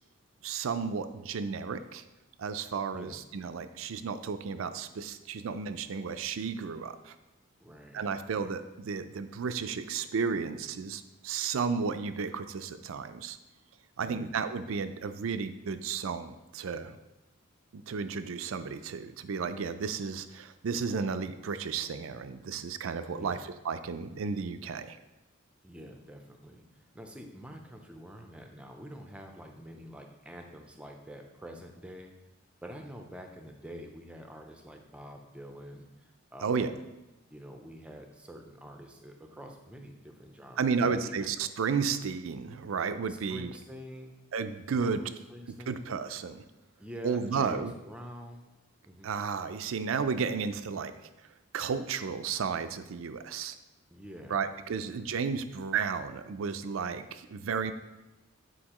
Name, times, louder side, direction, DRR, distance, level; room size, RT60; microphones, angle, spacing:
voice 1, 0.4-2.0 2.4-7.2 7.9-13.4 14.0-17.0 17.7-23.4 23.6-25.0 36.4-36.7 40.6-43.5 44.3-45.0 45.7-46.4 47.0-47.7 49.0-50.9 51.5-53.6 54.3-57.7, right 5 dB, 75° right, 10 dB, 0.4 m, -33 dB
voice 2, 7.6-8.0 8.3-8.5 14.0-14.4 23.1-23.4 25.6-32.1 32.6-36.8 37.3-41.3 43.1-44.2 44.8-45.8 46.8-48.5 48.9-49.1 53.9-54.4 54.7-55.0, equal, 5° right, 3 dB, 0.5 m, -46 dB
8.5 x 4.6 x 3.0 m, 1.0 s
head